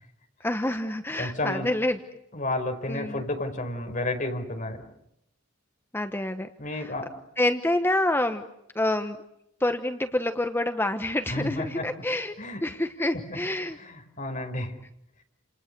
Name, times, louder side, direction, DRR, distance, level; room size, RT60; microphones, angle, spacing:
voice 1, 0.4-2.0 2.9-3.2 5.9-6.9 7.4-8.4 8.7-9.2 9.6-12.3 12.6-13.8, left 1 dB, 10° left, 7 dB, 1.1 m, -27 dB
voice 2, 1.2-1.7 2.3-4.8 6.6-7.1 11.3-11.9 12.4-12.6 13.1-13.2 13.8-14.8, left 2 dB, 40° left, 4 dB, 5.1 m, -31 dB
29.5 x 28.0 x 6.9 m, 0.81 s
head